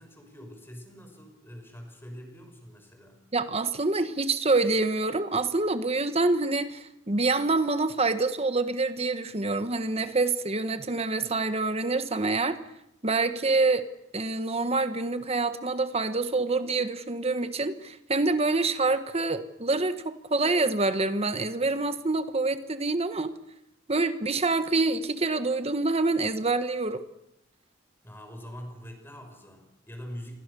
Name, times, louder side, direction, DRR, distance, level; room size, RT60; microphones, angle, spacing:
voice 1, 0.0-3.2 28.0-30.4, equal, 10° left, 5 dB, 6.1 m, -44 dB
voice 2, 3.3-12.6 13.0-13.9 14.1-23.3 23.9-27.0, right 3 dB, 30° right, 10 dB, 1.3 m, -26 dB
28.5 x 23.0 x 6.9 m, 0.82 s
head